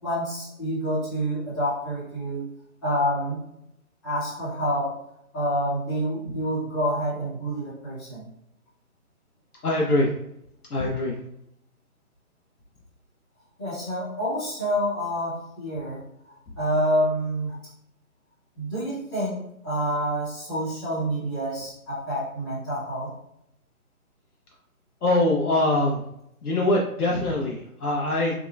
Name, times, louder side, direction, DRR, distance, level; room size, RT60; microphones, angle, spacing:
voice 1, 0.0-2.4 2.8-3.5 4.0-4.9 5.3-8.2 13.6-16.0 16.6-17.6 18.6-23.1, equal, 15° left, -13 dB, 0.8 m, -27 dB
voice 2, 9.6-10.1 10.7-11.2 25.0-26.0 26.4-28.3, left 2 dB, 80° left, -2 dB, 0.7 m, -23 dB
3.6 x 2.1 x 2.3 m, 0.77 s
figure-of-eight pair, 145°, 44 cm